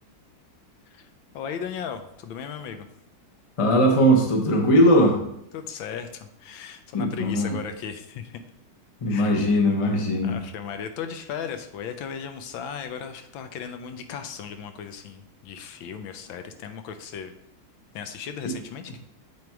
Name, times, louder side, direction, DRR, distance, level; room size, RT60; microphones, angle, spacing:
voice 1, 1.3-2.9 5.5-8.4 9.1-9.5 10.2-17.3 17.9-19.0, left 7 dB, 75° left, 8 dB, 1.3 m, -36 dB
voice 2, 3.6-5.2 6.9-7.6 9.0-10.4, equal, 30° left, 0 dB, 0.6 m, -19 dB
7.9 x 3.6 x 4.5 m, 0.76 s
omnidirectional pair, 2.2 m